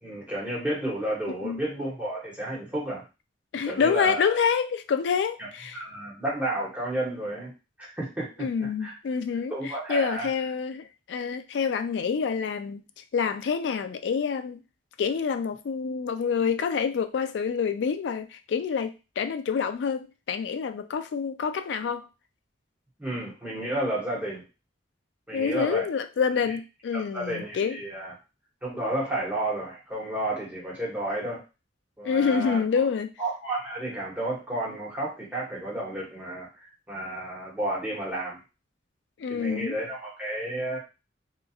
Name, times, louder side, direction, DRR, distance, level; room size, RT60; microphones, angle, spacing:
voice 1, 0.0-3.0 3.7-4.4 5.4-7.5 7.8-8.9 9.5-10.3 23.0-24.4 25.3-25.8 26.9-28.1 28.6-31.4 32.0-32.6 33.2-38.4 39.3-40.8, right 1 dB, 10° right, -6 dB, 1.2 m, -32 dB
voice 2, 1.3-1.6 3.5-5.8 8.4-14.6 15.0-22.1 25.3-27.8 32.0-33.1 39.2-39.8, left 6 dB, 70° left, 9 dB, 0.3 m, -27 dB
2.9 x 2.3 x 2.4 m, 0.29 s
head